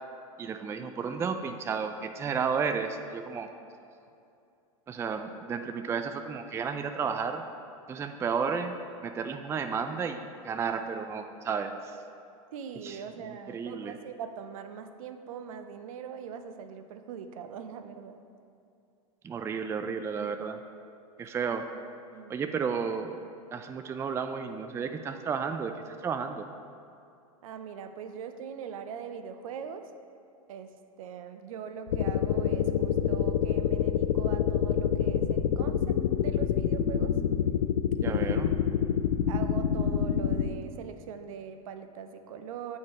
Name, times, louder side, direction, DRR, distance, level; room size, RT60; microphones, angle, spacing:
voice 1, 0.4-3.5 4.9-7.5 7.9-12.0 12.8-14.0 19.2-20.6 21.2-21.7 22.3-23.2 23.5-26.4 38.0-38.5, right 6 dB, 15° right, 7 dB, 0.3 m, -32 dB
voice 2, 12.5-18.2 21.4-21.6 22.1-22.4 27.4-29.8 30.5-30.7 31.0-37.1 38.0-38.4 39.3-42.8, right 7 dB, 70° right, 8 dB, 0.6 m, -41 dB
sound 1, 31.9-40.5, left 8 dB, 90° left, 0.4 m, -26 dB
8.3 x 4.5 x 4.8 m, 2.6 s
hypercardioid pair, 110°, 18 cm